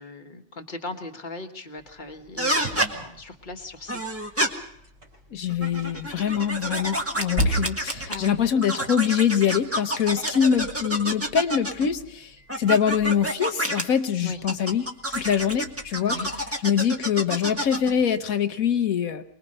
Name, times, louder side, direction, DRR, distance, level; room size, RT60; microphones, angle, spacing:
voice 1, 0.0-4.4 8.1-8.4 14.2-14.4 16.0-16.3, left 3 dB, 35° left, 5 dB, 1.6 m, -38 dB
sound 1, 1.7-8.5 9.5-18.0, equal, 55° right, 4.0 m, -38 dB
sound 2, 2.4-2.9 3.9-4.5 5.5-8.3 8.6-11.9 12.5-13.8 14.5-17.9, right 1 dB, 10° right, 1.5 m, -28 dB
voice 2, 5.3-16.2 16.6-19.2, left 8 dB, 80° left, 9 dB, 1.5 m, -24 dB
24.5 x 20.5 x 5.5 m, 0.70 s
omnidirectional pair, 1.5 m